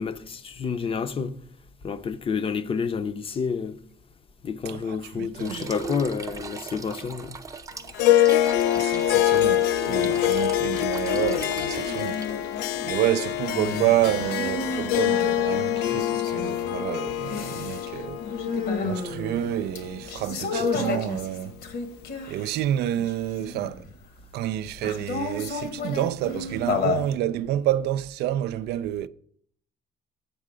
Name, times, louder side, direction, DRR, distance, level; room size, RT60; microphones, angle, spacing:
voice 1, 0.0-1.4 1.8-3.8 4.4-7.4, left 6 dB, 35° left, 0.6 m, -29 dB
voice 2, 4.6-6.1 8.5-12.2 12.8-18.2 18.8-21.6 22.3-23.8 24.3-29.1, right 12 dB, 75° right, 0.4 m, -29 dB
sound 1, 5.3-12.5, right 4 dB, 20° right, 0.6 m, -39 dB
Harp, 7.9-20.5, left 12 dB, 85° left, 0.4 m, -25 dB
sound 2, 9.9-10.3 10.7-22.6 23.0-23.9 24.8-27.1, left 4 dB, 65° left, 1.1 m, -32 dB
8.4 x 6.5 x 4.9 m
cardioid pair, 110°, 17 cm